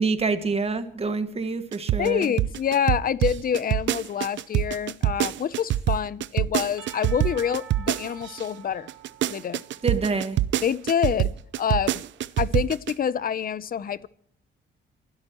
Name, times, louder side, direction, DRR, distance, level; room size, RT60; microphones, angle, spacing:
voice 1, 0.0-2.3 9.8-10.4, right 4 dB, 30° right, 1.6 m, -26 dB
sound 1, 1.7-8.4 8.9-12.9, right 13 dB, 70° right, 0.5 m, -25 dB
voice 2, 2.0-8.9 9.3-9.6 10.6-11.3 11.6-12.0 12.4-14.1, left 8 dB, 45° left, 0.7 m, -26 dB
Percussion / Church bell, 6.8-10.9, right 9 dB, 85° right, 1.7 m, -47 dB
27.0 x 12.0 x 3.1 m
cardioid pair, 90°, 20 cm